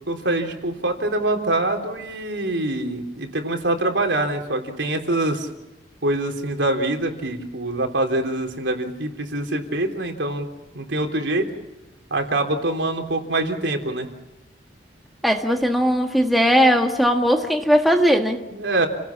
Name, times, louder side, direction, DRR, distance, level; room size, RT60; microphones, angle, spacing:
voice 1, 0.1-5.5 6.0-11.5 12.1-14.1 18.5-18.9, right 2 dB, 85° right, 3 dB, 3.5 m, -24 dB
voice 2, 15.2-18.4, equal, ahead, 3 dB, 1.6 m, -18 dB
29.5 x 18.0 x 7.3 m, 0.99 s
head